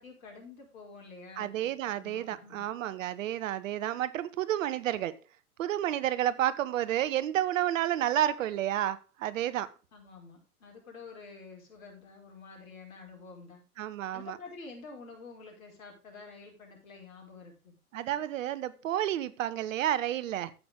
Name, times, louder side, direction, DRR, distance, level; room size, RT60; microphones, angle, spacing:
voice 1, 0.0-1.7 2.0-2.7 9.9-13.6 14.1-17.8, left 4 dB, 65° left, 5.5 m, -49 dB
voice 2, 1.4-5.1 5.6-9.7 13.8-14.4 17.9-20.5, right 12 dB, 55° right, 1.0 m, -30 dB
15.0 x 6.1 x 3.7 m
figure-of-eight pair, 105°, 45 cm